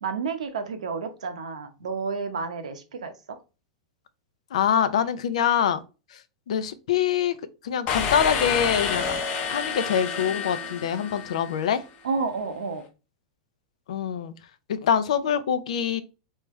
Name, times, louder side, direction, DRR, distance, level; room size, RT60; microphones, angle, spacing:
voice 1, 0.0-3.4 12.0-12.8, right 5 dB, 80° right, 0.8 m, -30 dB
voice 2, 4.5-5.8 6.1-6.2 6.5-7.4 7.6-9.1 9.5-11.8 13.9-14.3 14.7-16.0, left 8 dB, 75° left, 0.5 m, -24 dB
sound 1, 7.9-11.6, left 6 dB, 40° left, 0.8 m, -29 dB
3.5 x 3.3 x 3.1 m
hypercardioid pair, 110°, 4 cm